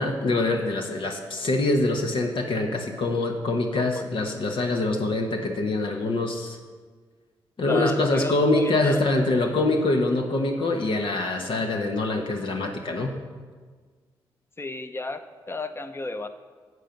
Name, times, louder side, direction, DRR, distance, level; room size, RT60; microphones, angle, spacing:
voice 1, 0.0-6.6 7.6-13.2, left 2 dB, 60° left, 3 dB, 1.1 m, -24 dB
voice 2, 3.8-4.1 7.6-9.0 14.6-15.2 15.5-16.3, left 3 dB, 25° left, 9 dB, 0.9 m, -32 dB
8.1 x 7.9 x 5.9 m, 1.5 s
hypercardioid pair, 40°, 10 cm